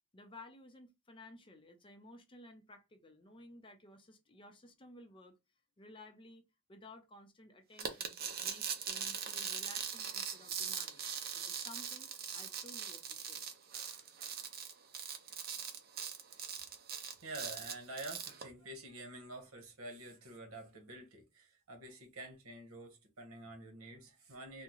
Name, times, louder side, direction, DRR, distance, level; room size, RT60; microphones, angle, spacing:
voice 1, 0.1-5.4 5.8-13.4, left 1 dB, 25° left, 0.6 m, -56 dB
sound 1, 7.8-18.4, right 7 dB, 45° right, 0.6 m, -41 dB
voice 2, 16.9-24.6, right 2 dB, 80° right, 1.2 m, -48 dB
3.5 x 2.1 x 3.0 m
head